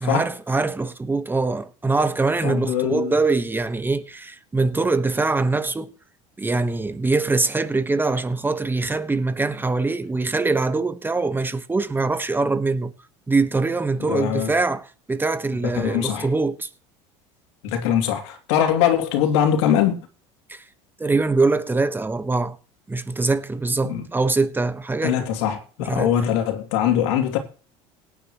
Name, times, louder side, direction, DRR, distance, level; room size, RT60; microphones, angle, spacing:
voice 1, 0.0-5.9 6.4-12.9 13.3-16.7 20.5-20.6 21.0-22.6 22.9-25.3 25.9-26.1, right 3 dB, 15° right, 1.2 m, -23 dB
voice 2, 2.4-3.1 14.0-14.5 15.6-16.3 17.6-20.0 23.8-24.1 25.0-27.4, left 9 dB, 80° left, 2.7 m, -22 dB
18.0 x 10.0 x 3.1 m
supercardioid pair, 100°, 14 cm